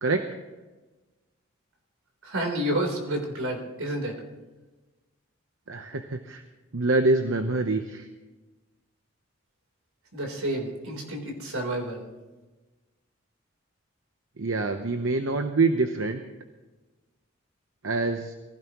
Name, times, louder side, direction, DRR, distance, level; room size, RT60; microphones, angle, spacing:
voice 1, 2.2-4.2 10.1-12.0, right 1 dB, 85° right, 2 dB, 3.7 m, -30 dB
voice 2, 5.7-6.4 6.7-8.1 14.4-16.2 17.8-18.3, right 3 dB, 70° right, 6 dB, 0.9 m, -25 dB
22.5 x 15.5 x 3.1 m, 1.2 s
head